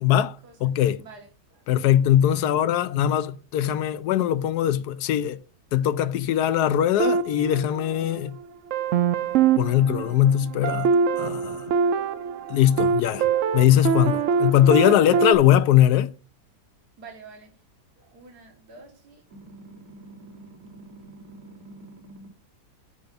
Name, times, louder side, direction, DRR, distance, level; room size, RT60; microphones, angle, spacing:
voice 1, 0.0-0.4 0.6-1.0 1.7-5.4 5.7-8.4 9.6-10.9 11.2-11.6 12.5-13.3 13.5-16.1, left 11 dB, 80° left, 1.2 m, -21 dB
voice 2, 1.0-1.7 14.7-15.1 17.0-17.5 18.0-22.3, right 3 dB, 80° right, 2.0 m, -47 dB
sound 1, 7.0-8.3 8.7-15.3, right 6 dB, 65° right, 0.9 m, -24 dB
6.9 x 5.2 x 5.2 m
omnidirectional pair, 1.7 m